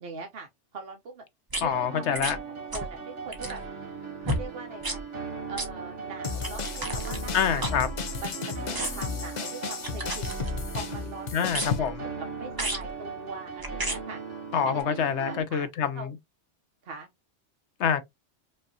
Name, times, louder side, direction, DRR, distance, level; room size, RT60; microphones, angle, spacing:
voice 1, 0.0-1.2 1.6-3.6 4.2-5.0 5.5-7.8 8.2-10.4 10.7-11.3 11.6-14.2 14.7-15.7 15.9-16.1 16.8-17.1, right 3 dB, 60° right, 1.0 m, -42 dB
sound 1, 1.5-1.6 2.1-2.4 2.7-2.9 3.3-3.7 4.2-4.4 4.8-5.0 5.5-5.7 6.4-8.3 8.7-9.1 9.8-10.8 11.5-11.9 12.5-12.9 13.6-14.0 14.8-14.9, right 2 dB, 20° right, 0.8 m, -33 dB
voice 2, 1.6-2.4 7.3-7.9 11.3-11.9 14.5-16.1 17.8-18.0, left 7 dB, 70° left, 1.0 m, -26 dB
sound 2, 1.7-15.4, right 5 dB, 80° right, 1.9 m, -39 dB
sound 3, 6.2-11.8, left 6 dB, 45° left, 0.6 m, -35 dB
5.2 x 2.8 x 2.7 m
omnidirectional pair, 1.2 m